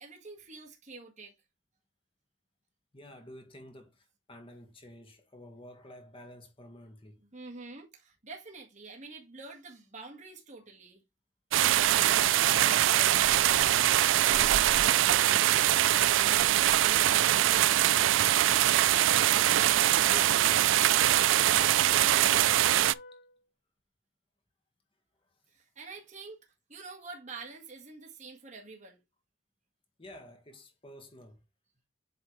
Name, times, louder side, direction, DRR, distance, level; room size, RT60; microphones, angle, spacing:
voice 1, 0.0-1.4 7.2-11.0 16.0-18.2 21.3-22.7 25.5-29.0, right 3 dB, 40° right, 1.8 m, -47 dB
voice 2, 2.9-7.2 11.8-15.7 19.3-20.7 30.0-31.4, left 1 dB, 30° left, 1.6 m, -50 dB
sound 1, 11.5-22.9, right 13 dB, 75° right, 0.3 m, -23 dB
Wind instrument woodwind instrument, 18.8-23.4, left 2 dB, 80° left, 2.6 m, -47 dB
8.2 x 4.2 x 3.2 m
head